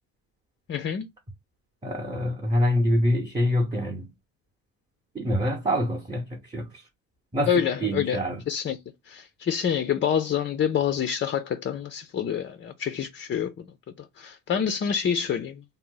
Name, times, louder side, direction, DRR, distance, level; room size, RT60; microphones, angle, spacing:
voice 1, 0.7-1.1 7.5-8.2 8.5-8.8 9.1-13.7 14.0-15.6, left 8 dB, 30° left, 0.4 m, -27 dB
voice 2, 1.8-4.1 5.1-6.8 7.3-8.4, equal, 10° right, 0.8 m, -26 dB
2.6 x 2.1 x 3.7 m
hypercardioid pair, 65°, 43 cm